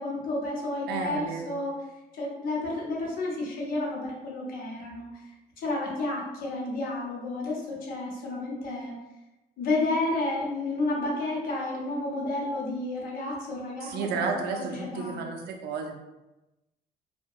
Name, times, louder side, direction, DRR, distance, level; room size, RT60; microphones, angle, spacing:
voice 1, 0.0-1.7 2.1-5.1 5.6-8.9 9.6-14.1 14.5-15.2, left 2 dB, 60° left, -3 dB, 0.7 m, -31 dB
voice 2, 0.9-1.5 13.8-15.9, right 5 dB, 75° right, 2 dB, 0.4 m, -32 dB
2.7 x 2.2 x 2.3 m, 1.0 s
cardioid pair, 165°, 17 cm